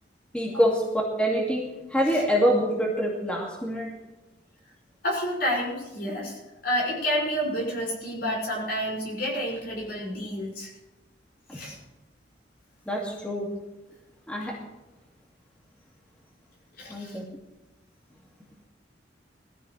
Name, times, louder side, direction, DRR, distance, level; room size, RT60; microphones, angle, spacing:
voice 1, 0.3-3.9 11.5-11.6 12.9-13.5 14.3-14.6 16.9-17.2, equal, 5° left, -3 dB, 2.1 m, -25 dB
voice 2, 5.0-10.7 11.5-11.8 16.8-17.2, equal, 60° left, -2 dB, 6.1 m, -29 dB
21.0 x 15.0 x 3.3 m, 1.0 s
head